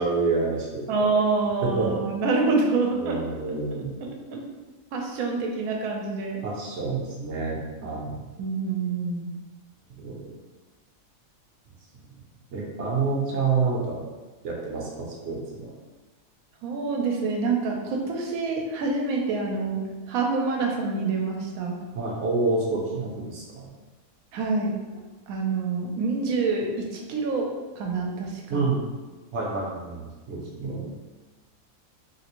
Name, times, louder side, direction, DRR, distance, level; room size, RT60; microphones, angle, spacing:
voice 1, 0.0-0.9 1.6-2.0 3.0-4.0 6.4-8.2 10.0-10.3 12.5-14.1 14.4-15.7 21.9-23.7 28.5-28.9 29.3-30.9, right 4 dB, 60° right, -3 dB, 0.9 m, -28 dB
voice 2, 0.9-3.2 3.7-4.2 4.9-6.4 8.4-9.3 16.6-21.8 24.3-24.8 25.3-27.5 27.8-28.6, right 4 dB, 85° right, 1 dB, 1.1 m, -26 dB
3.3 x 2.5 x 2.9 m, 1.2 s
omnidirectional pair, 1.5 m